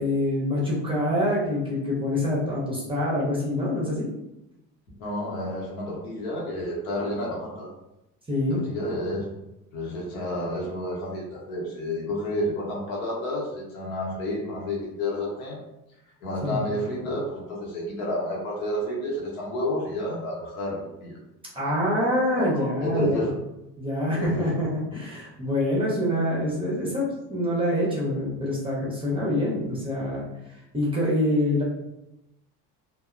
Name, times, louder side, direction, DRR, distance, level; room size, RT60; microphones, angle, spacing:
voice 1, 0.0-4.1 8.3-8.6 16.4-16.6 21.5-23.2 23.8-30.3 30.7-31.6, left 1 dB, 10° right, -5 dB, 0.7 m, -25 dB
voice 2, 5.0-7.7 8.6-9.3 9.7-15.6 16.2-21.2 22.4-23.4 24.1-24.5, left 1 dB, 60° left, -3 dB, 0.9 m, -30 dB
2.7 x 2.0 x 2.4 m, 0.90 s
figure-of-eight pair, 60°, 49 cm